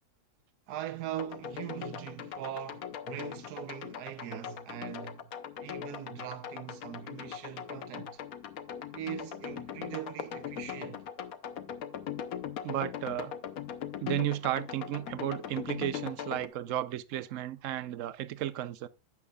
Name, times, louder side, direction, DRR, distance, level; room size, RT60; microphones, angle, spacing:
voice 1, 0.7-5.3 5.6-8.2 8.9-11.0, right 11 dB, 85° right, 1.3 m, -41 dB
sound 1, 1.2-16.5, left 9 dB, 65° left, 1.2 m, -40 dB
voice 2, 12.6-13.3 14.0-18.9, right 13 dB, 65° right, 0.9 m, -33 dB
12.0 x 8.4 x 2.3 m
omnidirectional pair, 1.7 m